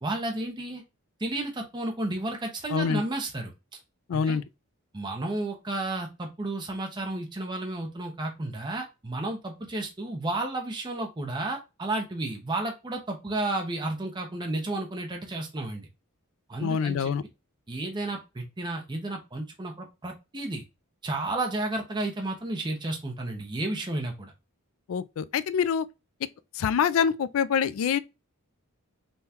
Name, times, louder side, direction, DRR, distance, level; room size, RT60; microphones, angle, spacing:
voice 1, 0.0-0.8 1.2-3.5 4.1-4.4 4.9-15.9 16.5-17.1 17.7-20.6 21.0-24.3, right 2 dB, 20° right, 0.6 m, -32 dB
voice 2, 2.7-3.0 4.1-4.4 16.6-17.2 24.9-25.9 26.5-28.0, left 7 dB, 65° left, 0.3 m, -25 dB
5.4 x 2.2 x 2.8 m
head